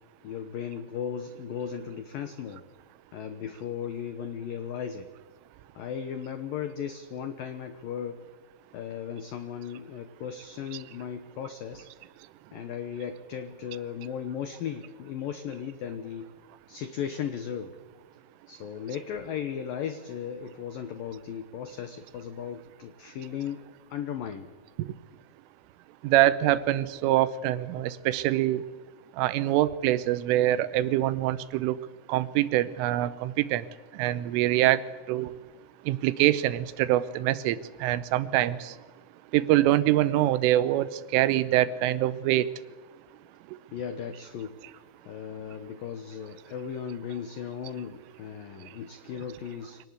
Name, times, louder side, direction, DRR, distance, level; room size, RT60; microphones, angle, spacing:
voice 1, 0.2-2.7 3.1-5.1 5.8-8.3 8.7-11.9 12.5-16.3 16.7-17.8 18.5-23.6 23.9-24.5 43.7-49.8, left 8 dB, 85° left, 9 dB, 2.0 m, -36 dB
voice 2, 26.0-28.6 29.2-31.8 32.1-33.7 34.0-34.8 35.1-35.3 35.9-38.7 39.3-40.9 41.1-42.5, right 14 dB, 80° right, 15 dB, 3.3 m, -24 dB
24.5 x 18.5 x 8.2 m, 1.3 s
omnidirectional pair, 5.8 m